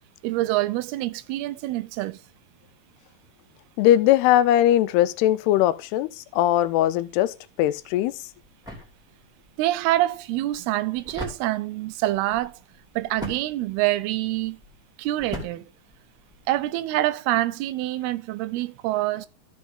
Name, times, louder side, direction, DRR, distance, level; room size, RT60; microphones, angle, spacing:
voice 1, 0.2-2.2 9.6-12.5 13.0-14.6 15.0-15.7 16.5-19.3, right 16 dB, 85° right, 2.6 m, -26 dB
voice 2, 3.8-6.1 6.3-7.3 7.6-8.1, left 13 dB, 90° left, 2.7 m, -20 dB
sound 1, 7.8-16.6, equal, ahead, 2.1 m, -42 dB
13.5 x 5.3 x 3.6 m
omnidirectional pair, 4.5 m